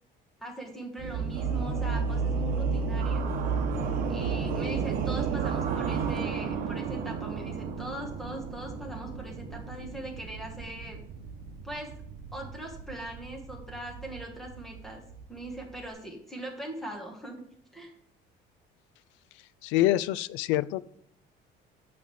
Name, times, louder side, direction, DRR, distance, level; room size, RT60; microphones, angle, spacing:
voice 1, 0.4-3.3 4.1-11.0 11.6-11.9 12.3-15.0 15.3-17.5 17.7-17.9, right 1 dB, ahead, 1 dB, 1.3 m, -40 dB
sound 1, 1.0-15.9, right 5 dB, 50° right, 1.1 m, -32 dB
voice 2, 19.6-20.9, left 15 dB, 80° left, 19 dB, 0.4 m, -26 dB
9.4 x 3.3 x 6.9 m, 0.69 s
cardioid pair, 175°, 19 cm